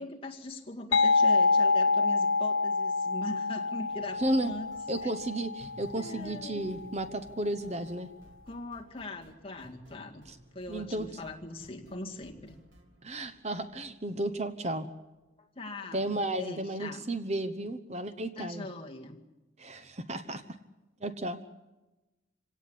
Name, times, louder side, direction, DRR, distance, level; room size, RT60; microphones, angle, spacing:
voice 1, 0.0-4.7 5.0-5.1 6.0-6.7 8.5-10.2 10.5-12.6 15.4-17.0 18.4-19.2, left 2 dB, 25° left, 1 dB, 2.0 m, -41 dB
sound 1, 0.9-6.4, left 4 dB, 80° left, 0.7 m, -27 dB
sound 2, 3.9-14.8, equal, 70° right, 3.3 m, -57 dB
voice 2, 4.2-4.5 4.9-8.1 10.3-10.4 10.7-11.1 13.0-14.9 15.9-18.7 19.6-20.4 21.0-21.4, right 1 dB, 35° right, 10 dB, 1.0 m, -33 dB
26.0 x 17.5 x 8.5 m, 1.1 s
head